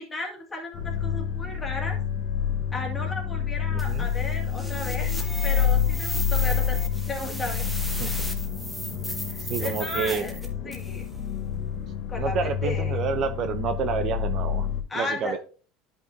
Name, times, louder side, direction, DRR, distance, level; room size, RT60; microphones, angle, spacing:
voice 1, 0.0-2.0 2.7-5.2 5.4-6.8 7.1-7.6 9.3-10.3 10.7-11.1 12.1-12.4 12.6-13.0 14.9-15.4, left 2 dB, 15° left, 0 dB, 1.9 m, -34 dB
sound 1, 0.7-14.8, left 8 dB, 50° left, 1.3 m, -28 dB
voice 2, 3.7-4.1 8.0-8.1 8.9-10.3 10.6-10.7 12.2-15.4, right 6 dB, 45° right, 10 dB, 0.6 m, -30 dB
sound 2, 3.8-11.0, equal, 5° right, 1.1 m, -36 dB
10.5 x 5.4 x 2.7 m, 0.39 s
supercardioid pair, 130°, 0 cm